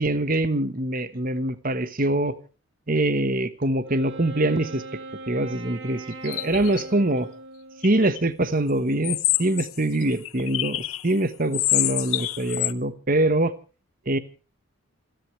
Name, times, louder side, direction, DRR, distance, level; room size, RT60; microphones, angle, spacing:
voice 1, 0.0-2.4 2.9-4.8 5.3-7.3 7.8-13.5 14.1-14.2, right 1 dB, 40° right, 12 dB, 1.2 m, -24 dB
Wind instrument woodwind instrument, 3.8-8.4, right 3 dB, 55° right, 3.0 m, -40 dB
sound 1, 6.1-6.8 7.8-8.2 9.0-11.1 11.5-12.7, left 17 dB, 75° left, 0.8 m, -27 dB
28.5 x 11.5 x 3.2 m, 0.36 s
head